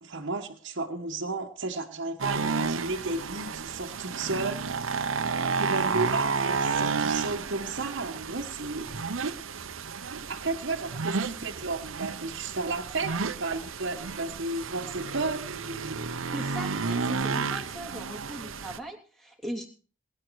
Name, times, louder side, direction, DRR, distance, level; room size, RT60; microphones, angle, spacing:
voice 1, 0.0-4.8 5.6-9.0 10.3-16.0, right 3 dB, 65° right, 1.3 m, -33 dB
sound 1, 2.2-18.8, right 5 dB, 85° right, 0.9 m, -31 dB
voice 2, 16.3-19.7, right 1 dB, ahead, 2.9 m, -39 dB
20.0 x 9.6 x 4.7 m
head